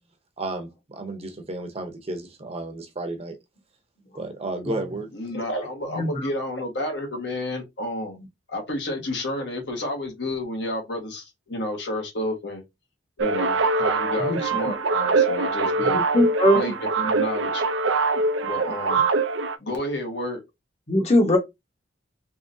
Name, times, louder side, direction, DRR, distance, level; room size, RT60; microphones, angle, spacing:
voice 1, 0.4-3.4 4.1-5.1, right 2 dB, 35° right, 0.8 m, -32 dB
voice 2, 5.1-12.6 13.2-16.0 16.5-17.6 18.4-19.1 19.6-20.4, left 1 dB, 65° left, 1.4 m, -31 dB
voice 3, 5.9-6.3 14.2-14.4 16.1-16.6 20.9-21.4, left 1 dB, 35° left, 1.1 m, -20 dB
sound 1, 13.2-19.6, right 3 dB, 85° right, 0.5 m, -23 dB
3.5 x 3.3 x 2.7 m
head